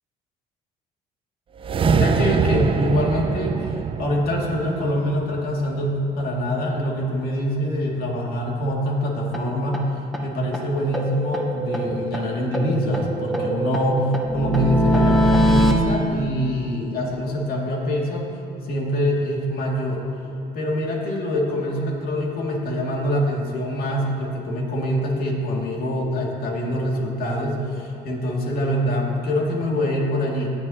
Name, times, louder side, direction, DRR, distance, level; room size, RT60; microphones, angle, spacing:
sound 1, 1.6-6.0, right 6 dB, 30° right, 0.4 m, -24 dB
voice 1, 1.8-9.8 10.2-18.3 18.6-20.0 20.5-30.5, equal, 60° left, -2 dB, 2.3 m, -24 dB
sound 2, 9.3-9.4 9.7-9.8 10.1-10.2 10.5-10.6 10.9-12.2 12.5-15.7, equal, ahead, 1.1 m, -22 dB
18.5 x 7.7 x 2.9 m, 3.0 s
cardioid pair, 110°, 17 cm